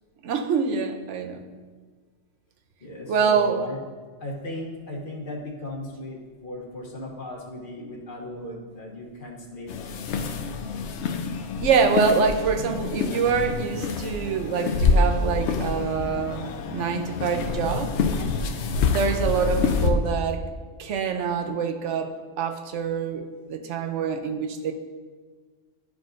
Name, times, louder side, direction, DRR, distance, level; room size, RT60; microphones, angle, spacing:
voice 1, 0.2-1.4 3.1-3.6 11.6-17.9 18.9-20.4 20.8-24.7, right 6 dB, 80° right, 7 dB, 0.9 m, -25 dB
voice 2, 2.8-3.8 4.2-9.7, equal, 45° left, -1 dB, 1.1 m, -36 dB
sound 1, 9.7-19.9, left 4 dB, 70° left, 0.9 m, -26 dB
11.5 x 4.8 x 2.5 m, 1.5 s
omnidirectional pair, 1.2 m